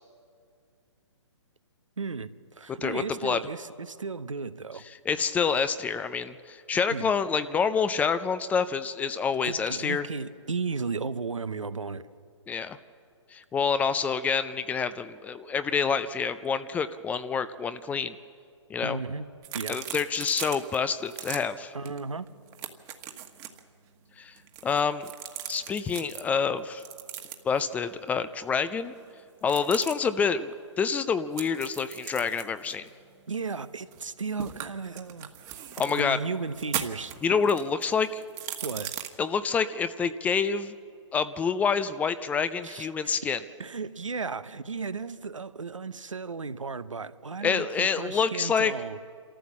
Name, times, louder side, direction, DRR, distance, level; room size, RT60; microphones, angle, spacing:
voice 1, 2.0-4.8 6.9-7.1 9.4-12.0 18.8-19.3 19.5-19.8 21.7-22.3 33.3-35.3 35.7-37.1 38.6-38.9 42.6-43.1 43.6-49.0, right 4 dB, 85° right, 0.9 m, -35 dB
voice 2, 2.8-3.4 5.1-10.0 12.5-12.8 13.3-18.2 18.7-19.0 19.7-21.7 24.2-24.3 24.6-25.1 25.5-26.8 27.4-28.9 29.4-32.9 35.8-36.2 37.2-38.2 39.2-40.7 41.1-43.4 47.4-48.7, left 6 dB, 10° left, 0.4 m, -27 dB
sound 1, 19.4-20.8 21.1-21.4 21.8-22.0 22.3-23.6 24.4-26.2 26.8-27.6 29.4-29.9 31.4-34.1 34.4-36.0 36.5-39.1, right 11 dB, 25° right, 1.3 m, -38 dB
27.0 x 13.5 x 7.2 m
figure-of-eight pair, 130°, 16 cm